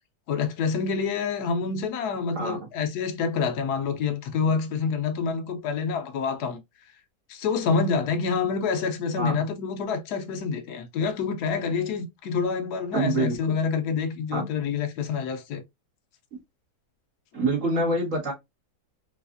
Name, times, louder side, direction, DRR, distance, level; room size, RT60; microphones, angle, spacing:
voice 1, 0.3-6.6 7.3-15.6, left 5 dB, 85° left, 1.2 m, -27 dB
voice 2, 12.9-13.4 14.3-14.5 16.3-16.4 17.3-18.3, right 2 dB, 55° right, 1.8 m, -26 dB
4.0 x 2.4 x 2.4 m
omnidirectional pair, 1.7 m